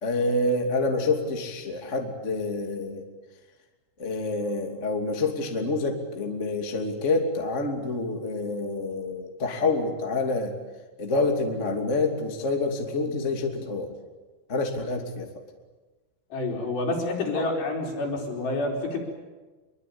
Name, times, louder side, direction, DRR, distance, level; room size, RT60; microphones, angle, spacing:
voice 1, 0.0-3.0 4.0-10.5 11.0-13.9 14.5-15.3 17.3-17.4, left 3 dB, 25° left, 2 dB, 1.9 m, -27 dB
voice 2, 16.3-19.0, left 2 dB, 60° left, 0 dB, 6.5 m, -28 dB
25.5 x 23.0 x 8.7 m, 1.2 s
omnidirectional pair, 5.6 m